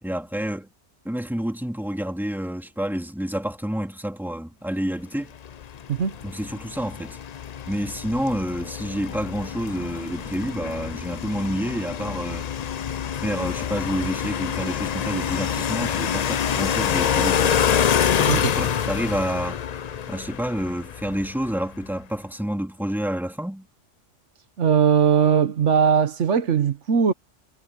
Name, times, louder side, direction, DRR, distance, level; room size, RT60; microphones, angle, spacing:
voice 1, 0.0-0.7 1.0-5.3 6.2-7.2 7.7-12.5 13.2-17.6 18.2-19.6 20.1-23.7, equal, ahead, 2.4 m, -29 dB
sound 1, 5.4-21.6, left 8 dB, 55° left, 0.5 m, -26 dB
voice 2, 24.6-27.1, right 7 dB, 80° right, 1.4 m, -19 dB
omnidirectional pair, 1.2 m